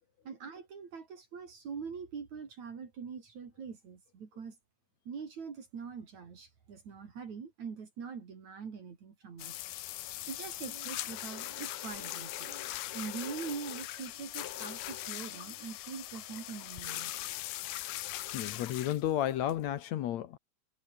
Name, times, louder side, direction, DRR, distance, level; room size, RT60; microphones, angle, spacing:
voice 1, 0.3-4.6 5.1-9.6 9.9-17.1, right 6 dB, 50° right, 4.2 m, -43 dB
sound 1, 9.4-19.8, left 15 dB, 85° left, 3.0 m, -40 dB
voice 2, 18.3-20.4, left 12 dB, 65° left, 1.9 m, -32 dB
omnidirectional pair, 4.2 m